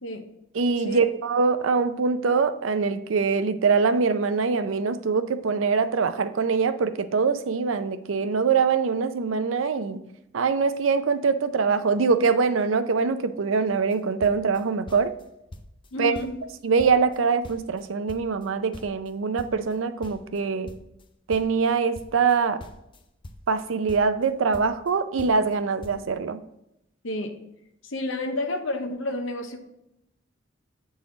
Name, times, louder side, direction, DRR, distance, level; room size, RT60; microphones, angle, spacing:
voice 1, 0.5-10.0 10.3-15.1 16.0-16.1 16.6-20.7 21.3-22.6 23.5-26.4, right 5 dB, 85° right, 11 dB, 0.5 m, -23 dB
sound 1, 13.7-14.0 14.2-15.2 15.5-15.9 16.1-17.8 18.1-21.0 21.3-23.6 23.9-24.9 25.2-25.6 25.8-26.0, left 1 dB, 25° left, 0.5 m, -44 dB
voice 2, 15.9-16.4 27.0-27.4 27.8-29.6, left 1 dB, 75° left, 6 dB, 0.9 m, -30 dB
8.4 x 4.0 x 3.8 m, 0.84 s
head